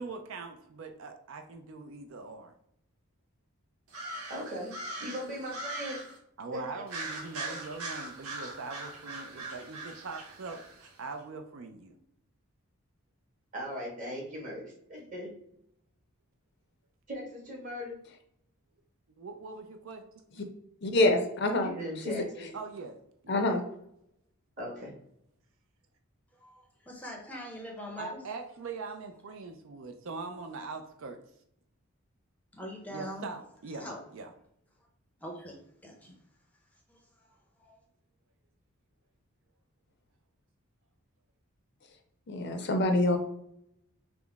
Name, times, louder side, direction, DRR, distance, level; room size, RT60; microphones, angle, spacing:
voice 1, 0.0-2.5 6.4-12.0 19.2-20.1 22.5-23.0 23.2-23.4 28.0-31.2 32.9-33.9 34.1-34.3, right 3 dB, 60° right, 6 dB, 0.4 m, -42 dB
sound 1, 3.9-6.2 6.9-10.9, right 2 dB, 85° right, 0.9 m, -41 dB
voice 2, 4.3-6.0 6.5-6.6 7.5-7.6 13.5-15.3 17.1-18.0 21.6-22.4 24.6-24.9, equal, 35° right, -4 dB, 1.4 m, -39 dB
voice 3, 20.8-22.5 23.3-23.6 42.3-43.2, left 2 dB, 50° left, 5 dB, 0.5 m, -27 dB
voice 4, 26.4-28.2 32.5-33.3 33.8-34.0 35.2-36.1 36.9-37.8, equal, 5° left, -1 dB, 0.6 m, -43 dB
5.8 x 2.0 x 3.4 m, 0.74 s
head